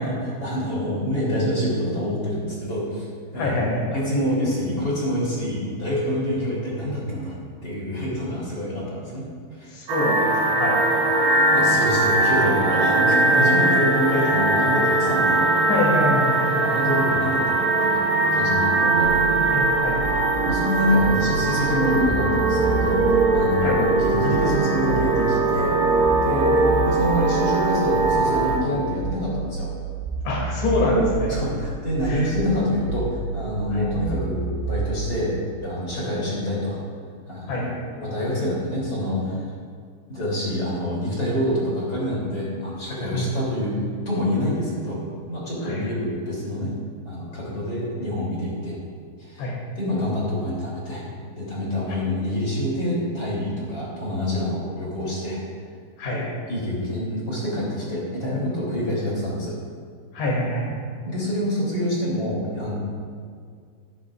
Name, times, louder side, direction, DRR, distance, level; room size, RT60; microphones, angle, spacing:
voice 1, 0.0-3.1 3.3-3.6 3.9-7.4 7.6-9.2 9.5-9.8 11.5-15.5 16.1-16.2 16.6-19.1 20.4-29.7 31.3-36.8 37.3-37.6 38.0-39.5 40.1-43.8 44.0-45.0 45.3-46.7 47.0-48.8 49.2-49.5 49.8-51.0 51.3-55.4 56.1-56.2 56.5-59.5 61.0-62.7, equal, 25° left, -6 dB, 2.9 m, -26 dB
voice 2, 3.4-3.8 9.7-10.8 14.2-14.3 15.7-16.8 18.8-20.1 23.6-23.8 30.2-31.4 32.1-32.3 33.7-33.9 37.5-37.8 43.1-43.5 45.6-45.9 49.4-49.6 56.0-56.3 60.1-60.7, left 1 dB, 80° left, -3 dB, 5.0 m, -25 dB
sound 1, 9.9-28.6, right 2 dB, 70° right, 2.3 m, -21 dB
sound 2, 19.0-35.0, right 4 dB, 90° right, 3.6 m, -30 dB
15.5 x 12.5 x 2.5 m, 2.1 s
omnidirectional pair, 5.1 m